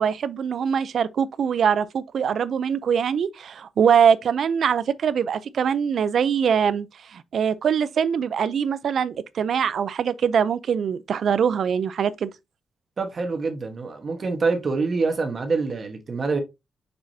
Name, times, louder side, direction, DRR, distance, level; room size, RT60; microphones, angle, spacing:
voice 1, 0.0-12.3, right 7 dB, 60° right, 0.5 m, -23 dB
voice 2, 13.0-16.4, right 4 dB, 35° right, 1.3 m, -25 dB
6.2 x 6.0 x 2.7 m
wide cardioid pair, 165°, 0 cm